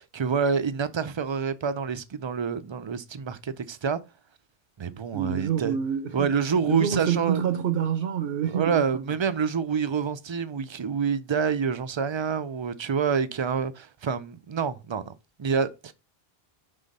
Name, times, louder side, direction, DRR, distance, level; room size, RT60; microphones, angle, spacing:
voice 1, 0.0-4.0 4.8-5.8 6.1-7.4 8.4-15.1 15.4-15.9, right 6 dB, 45° right, 0.4 m, -27 dB
voice 2, 5.1-6.4 6.7-9.0, right 9 dB, 65° right, 0.8 m, -27 dB
5.6 x 3.5 x 5.2 m
omnidirectional pair, 1.1 m